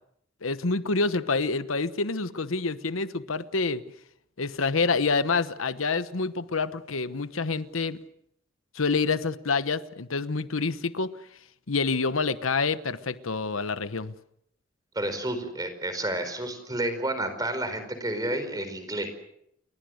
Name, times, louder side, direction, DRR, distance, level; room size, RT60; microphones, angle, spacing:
voice 1, 0.4-3.8 4.4-8.0 8.7-11.1 11.7-14.1, left 4 dB, 85° left, 13 dB, 1.1 m, -27 dB
voice 2, 14.9-19.1, right 1 dB, 20° right, 9 dB, 4.6 m, -30 dB
29.5 x 22.5 x 6.5 m, 0.74 s
head